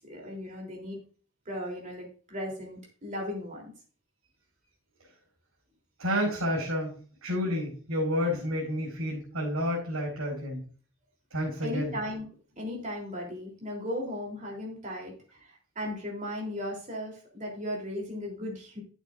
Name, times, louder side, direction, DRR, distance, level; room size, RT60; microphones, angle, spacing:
voice 1, 0.1-1.0 1.4-3.7 11.6-12.2 12.6-18.8, left 1 dB, 35° right, -1 dB, 3.4 m, -36 dB
voice 2, 6.0-10.6 11.3-11.9, equal, 90° right, -4 dB, 4.8 m, -30 dB
11.5 x 8.4 x 2.5 m, 0.41 s
head